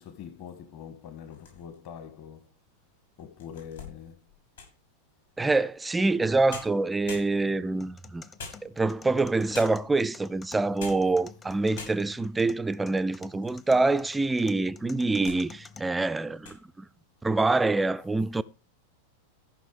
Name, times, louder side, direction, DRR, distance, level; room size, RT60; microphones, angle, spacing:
voice 1, 0.0-2.5 3.2-4.3, left 8 dB, 45° left, 1.6 m, -44 dB
sound 1, 1.2-1.9 2.5-2.6 3.2-4.9 6.1-6.2 6.5-7.7 8.4-9.1 9.5-10.0 10.6-11.2 11.4-11.5 11.7-12.3 12.9-13.7 14.0-14.1 14.8-15.5 15.8-16.0 16.3-16.6, left 5 dB, 65° left, 5.8 m, -44 dB
voice 2, 5.4-8.2 8.6-16.9 17.2-18.4, right 3 dB, 10° right, 0.4 m, -26 dB
sound 2, 7.8-15.8, left 5 dB, 20° left, 0.9 m, -50 dB
14.0 x 5.8 x 5.0 m
figure-of-eight pair, 90°, 0 cm